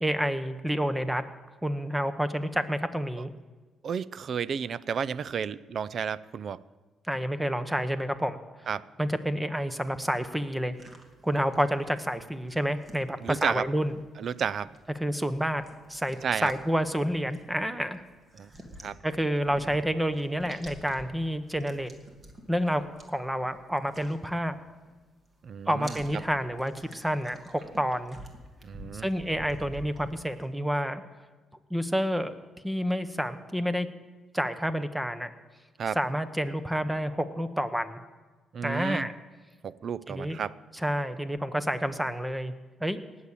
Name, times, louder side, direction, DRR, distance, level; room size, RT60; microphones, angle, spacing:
voice 1, 0.0-1.2 1.6-3.3 7.1-8.4 9.0-10.8 11.2-14.0 15.0-15.6 15.9-18.0 19.0-21.9 22.5-22.8 23.1-24.6 25.7-28.2 28.9-31.0 31.7-32.3 32.6-33.9 34.3-35.3 35.9-38.0 38.6-39.1 40.1-40.4 40.8-42.5 42.8-43.0, equal, 10° right, 11 dB, 1.0 m, -29 dB
voice 2, 3.8-6.6 8.7-8.8 13.2-13.7 14.2-14.7 16.2-16.5 18.3-18.5 18.8-19.0 25.4-26.0 28.6-29.1 35.8-36.0 38.5-39.1 39.6-40.5, right 7 dB, 55° right, 19 dB, 0.5 m, -32 dB
sound 1, 10.7-25.0 25.3-30.5, right 1 dB, 30° right, 2.4 m, -50 dB
18.5 x 7.3 x 8.3 m, 1.3 s
cardioid pair, 90°, 0 cm